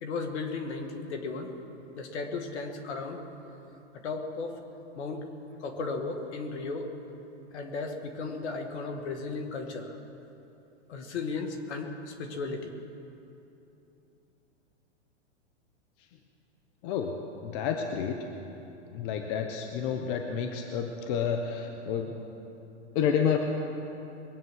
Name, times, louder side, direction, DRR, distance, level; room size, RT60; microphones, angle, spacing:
voice 1, 0.0-1.5 1.9-3.2 4.0-4.6 5.0-5.3 5.6-6.9 7.5-10.0 10.9-12.7, left 4 dB, 65° left, 5 dB, 2.1 m, -35 dB
voice 2, 17.4-18.1 18.9-22.1 22.9-23.4, left 7 dB, 45° left, 4 dB, 1.2 m, -29 dB
22.0 x 9.0 x 6.5 m, 2.9 s
hypercardioid pair, 125°, 35 cm